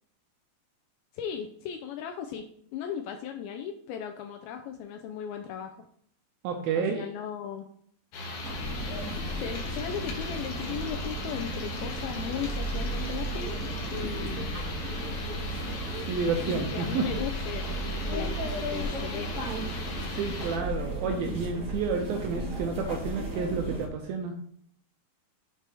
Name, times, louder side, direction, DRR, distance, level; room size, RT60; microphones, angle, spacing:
voice 1, 1.1-5.9 6.8-7.7 9.4-13.6 13.9-14.5 16.5-17.8 18.0-19.3, left 8 dB, 85° left, 5 dB, 2.2 m, -37 dB
voice 2, 6.4-7.1 16.1-17.1 20.1-24.3, right 5 dB, 80° right, 4 dB, 2.2 m, -30 dB
sound 1, 8.1-20.6, left 1 dB, 65° left, 2.5 m, -37 dB
sound 2, 8.4-23.9, right 1 dB, 55° right, 0.9 m, -35 dB
6.7 x 4.5 x 4.6 m, 0.64 s
omnidirectional pair, 4.8 m